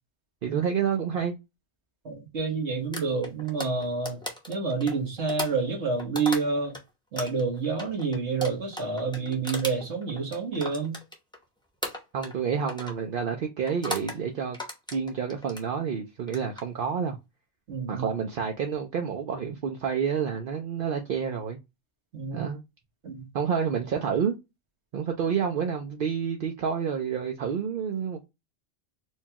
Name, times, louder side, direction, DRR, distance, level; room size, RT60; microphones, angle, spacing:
voice 1, 0.4-1.4 12.1-14.6 14.9-17.2 17.9-21.6 22.3-22.6 23.3-24.4 24.9-28.2, right 7 dB, 60° right, 0.7 m, -29 dB
voice 2, 2.0-6.8 7.1-11.0 17.7-18.1 22.1-22.5 23.0-23.2, right 4 dB, 85° right, 1.5 m, -29 dB
sound 1, 2.9-6.8 7.2-11.4 11.8-12.4 12.7-13.0 13.7-14.2 14.5-15.7 16.2-16.6, left 1 dB, 5° left, 0.7 m, -36 dB
4.5 x 2.3 x 2.8 m
omnidirectional pair, 1.1 m